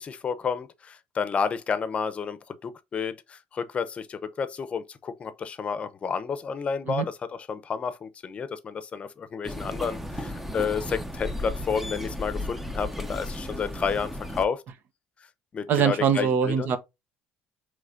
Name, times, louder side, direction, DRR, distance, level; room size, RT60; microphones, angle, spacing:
voice 1, 0.0-14.6 15.5-16.7, left 6 dB, 35° left, 0.7 m, -31 dB
sound 1, 9.4-14.5, left 1 dB, 5° right, 0.6 m, -34 dB
voice 2, 15.7-16.8, right 7 dB, 60° right, 0.8 m, -23 dB
4.7 x 3.2 x 2.6 m
cardioid pair, 105°, 4 cm